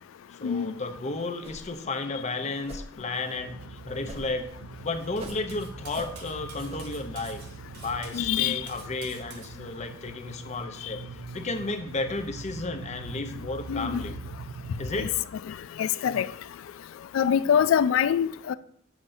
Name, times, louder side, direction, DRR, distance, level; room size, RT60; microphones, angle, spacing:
voice 1, 0.3-4.5 4.8-7.4 7.7-14.2 14.8-15.2 17.5-17.7, left 3 dB, 35° left, 0.6 m, -33 dB
sound 1, 1.4-1.8 2.1-2.2 2.6-2.9 4.1-4.5 4.7-5.4 5.9-6.1 6.6-6.8, right 1 dB, 30° right, 0.8 m, -41 dB
sound 2, 3.3-15.2, right 4 dB, 70° right, 0.4 m, -43 dB
Cutlery silverware, 5.2-9.5, right 5 dB, 55° right, 1.2 m, -48 dB
voice 2, 8.1-8.6 13.7-14.0 15.0-15.1 15.8-16.3 17.1-18.6, left 8 dB, 85° left, 0.3 m, -24 dB
8.5 x 7.2 x 2.6 m
head